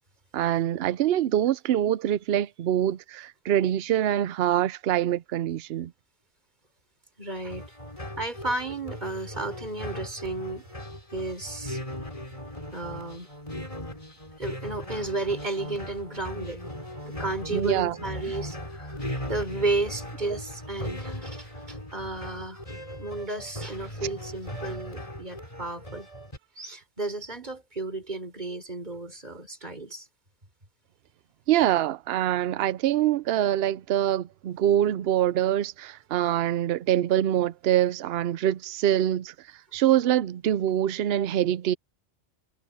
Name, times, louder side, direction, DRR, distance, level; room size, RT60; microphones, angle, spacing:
voice 1, 0.3-5.9 17.5-18.0 31.5-39.3 39.7-41.7, right 11 dB, 65° right, 0.8 m, -24 dB
voice 2, 7.2-7.6 8.2-10.7 11.1-11.8 12.7-13.3 14.4-16.6 17.0-22.6 23.0-26.1 26.6-30.1, right 2 dB, 40° right, 4.7 m, -33 dB
sound 1, 7.4-26.4, left 1 dB, 30° left, 6.4 m, -38 dB
omnidirectional pair, 1.2 m